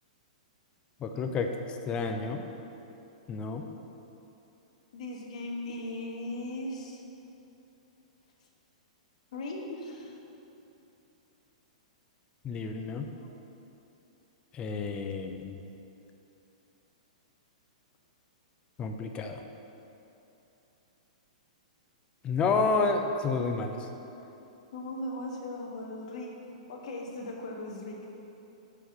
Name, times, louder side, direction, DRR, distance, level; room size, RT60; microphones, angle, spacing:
voice 1, 1.0-1.5 1.9-2.4 3.3-3.6 12.4-13.1 14.5-15.6 18.8-19.4 22.2-23.9, left 4 dB, 25° left, 5 dB, 0.6 m, -30 dB
voice 2, 4.9-7.0 9.3-10.2 24.7-26.4 26.7-28.1, left 1 dB, 65° left, -1 dB, 1.5 m, -38 dB
6.1 x 5.8 x 6.9 m, 2.9 s
hypercardioid pair, 130°, 4 cm